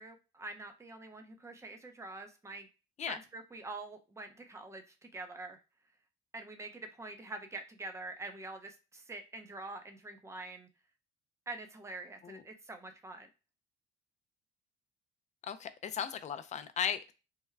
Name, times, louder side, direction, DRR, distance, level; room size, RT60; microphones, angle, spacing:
voice 1, 0.0-2.7 3.1-5.6 6.3-10.7 11.5-13.3, right 2 dB, 15° right, 5 dB, 0.7 m, -45 dB
voice 2, 15.5-17.1, left 8 dB, 35° left, 11 dB, 0.5 m, -36 dB
3.5 x 2.1 x 3.2 m, 0.30 s
cardioid pair, 120°, 20 cm